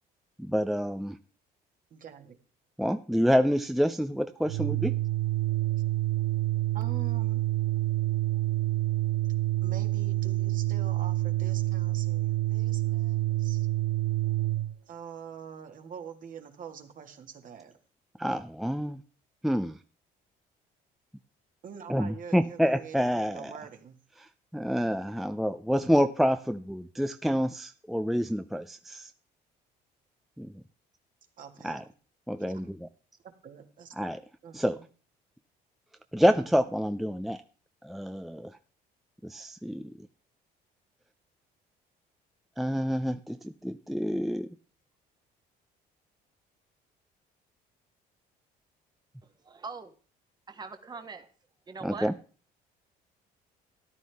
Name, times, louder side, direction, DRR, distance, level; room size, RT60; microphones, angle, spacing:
voice 1, 0.4-1.2 2.8-4.9 18.2-19.0 19.4-19.8 21.9-23.5 24.2-29.1 30.4-30.5 31.6-31.8 32.3-32.9 34.0-34.2 34.5-34.8 36.1-37.4 37.8-38.6 39.2-39.9 42.6-44.5 51.8-52.1, equal, ahead, 9 dB, 0.5 m, -28 dB
voice 2, 1.9-2.4 6.7-7.4 9.6-13.7 14.9-17.8 21.6-24.0 31.4-31.8 32.4-32.6 33.2-33.9 34.4-34.8, right 7 dB, 50° right, 5 dB, 1.9 m, -45 dB
Organ, 4.4-14.8, right 16 dB, 85° right, 0.4 m, -28 dB
voice 3, 49.4-49.9 50.5-51.3 51.7-52.1, right 4 dB, 25° right, 8 dB, 1.3 m, -41 dB
13.5 x 11.0 x 3.5 m, 0.38 s
cardioid pair, 110°, 17 cm